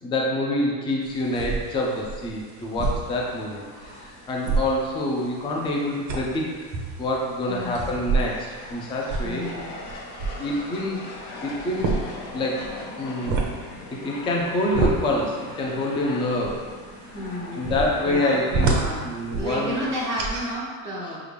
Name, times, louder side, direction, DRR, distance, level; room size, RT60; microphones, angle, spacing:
voice 1, 0.0-6.6 7.0-9.5 10.4-11.1 11.4-11.9 12.3-12.7 13.0-13.4 13.9-16.6 17.5-18.8 19.0-19.8, left 1 dB, 10° left, -2 dB, 0.3 m, -26 dB
sound 1, 1.0-20.5, right 3 dB, 35° right, 0.7 m, -31 dB
sound 2, 3.0-19.9, left 2 dB, 55° left, 0.8 m, -42 dB
voice 2, 7.5-8.0 9.2-9.7 17.1-17.7 18.0-21.2, equal, 5° right, -11 dB, 0.8 m, -32 dB
5.0 x 2.4 x 3.3 m, 1.5 s
supercardioid pair, 110°, 49 cm